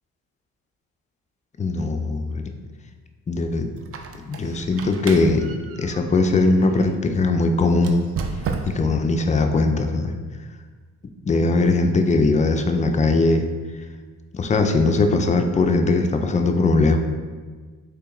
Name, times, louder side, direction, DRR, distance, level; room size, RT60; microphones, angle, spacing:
voice 1, 1.6-2.4 3.3-3.7 4.3-5.5 5.8-8.0 8.6-10.1 11.3-13.5 14.3-17.0, left 3 dB, 20° left, 6 dB, 0.4 m, -20 dB
Squeak, 3.8-6.9 7.7-9.0, right 5 dB, 45° right, 0.4 m, -33 dB
3.3 x 3.1 x 3.0 m, 1.5 s
supercardioid pair, 65°, 34 cm